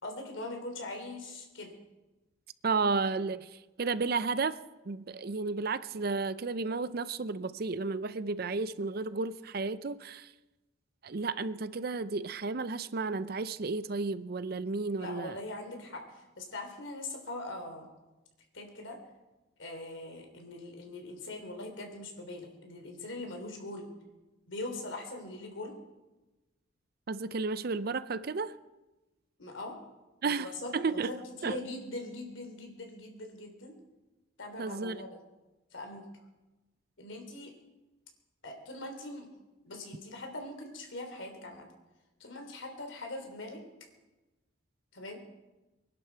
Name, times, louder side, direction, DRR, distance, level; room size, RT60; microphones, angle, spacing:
voice 1, 0.0-1.7 15.0-17.9 18.5-19.0 19.6-23.9 24.5-25.7 29.4-29.8 30.2-33.8 34.4-35.2 35.7-36.0 37.0-37.5 38.4-39.3 39.6-41.7 42.2-43.7 44.9-45.2, left 2 dB, 80° left, 3.2 m, -42 dB
voice 2, 2.6-3.5 3.8-4.6 4.9-10.3 11.0-15.4 27.1-28.5 30.2-31.1 31.4-31.6 34.6-35.0, right 4 dB, 50° right, 0.6 m, -32 dB
24.0 x 11.5 x 4.5 m
head